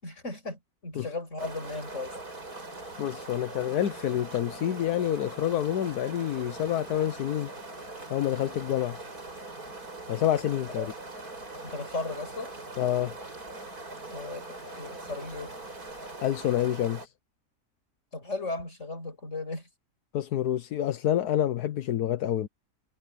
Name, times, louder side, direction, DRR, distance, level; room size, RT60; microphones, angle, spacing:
voice 1, 0.0-2.2 10.8-10.9 11.6-12.6 14.1-15.5 18.1-19.7, left 3 dB, 50° left, 6.4 m, -36 dB
sound 1, 1.4-17.1, right 2 dB, 70° right, 6.9 m, -42 dB
voice 2, 3.0-7.5 8.1-9.0 10.1-10.9 12.8-13.2 16.2-17.1 20.1-22.5, left 11 dB, 80° left, 1.4 m, -28 dB
omnidirectional pair, 1.6 m